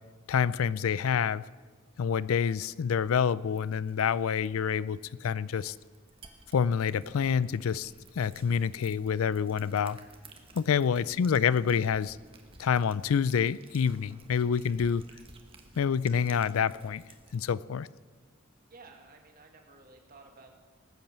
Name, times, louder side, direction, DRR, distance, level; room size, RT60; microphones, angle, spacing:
voice 1, 0.3-1.4 2.0-5.7 6.5-10.0 10.5-12.2 12.6-15.0 15.8-17.0 17.3-17.9, left 7 dB, 85° left, 19 dB, 0.4 m, -27 dB
sound 1, 3.5-17.4, right 3 dB, 25° right, 1.3 m, -56 dB
voice 2, 10.9-11.2 18.7-20.6, right 3 dB, 45° right, 3 dB, 2.1 m, -54 dB
19.0 x 8.8 x 7.4 m, 1.4 s
head